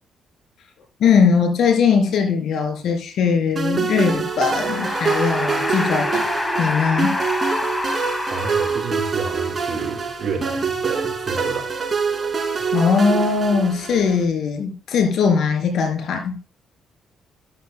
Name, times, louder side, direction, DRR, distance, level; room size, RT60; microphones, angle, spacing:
voice 1, 1.0-6.3 6.6-7.2 12.7-16.4, left 5 dB, 75° left, 5 dB, 3.2 m, -20 dB
sound 1, 3.6-14.2, right 5 dB, 30° right, 2.7 m, -25 dB
sound 2, 4.3-9.4, left 2 dB, 20° left, 1.2 m, -27 dB
voice 2, 8.3-11.7, right 5 dB, 55° right, 0 dB, 3.9 m, -30 dB
13.0 x 12.0 x 2.2 m, 0.36 s
cardioid pair, 90°, 0 cm